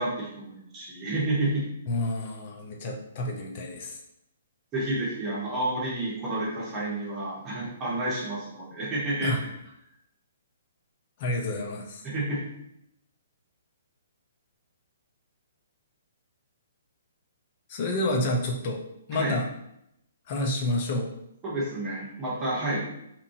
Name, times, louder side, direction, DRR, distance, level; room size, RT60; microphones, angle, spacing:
voice 1, 0.0-1.7 4.7-9.3 12.0-12.4 19.1-19.3 21.4-22.8, right 1 dB, 25° right, -7 dB, 1.0 m, -30 dB
voice 2, 1.9-4.0 9.2-9.4 11.2-12.1 17.7-18.8 19.1-19.5 20.3-21.1, left 1 dB, 45° left, 1 dB, 0.6 m, -29 dB
2.9 x 2.5 x 2.7 m, 0.80 s
figure-of-eight pair, 130°, 0 cm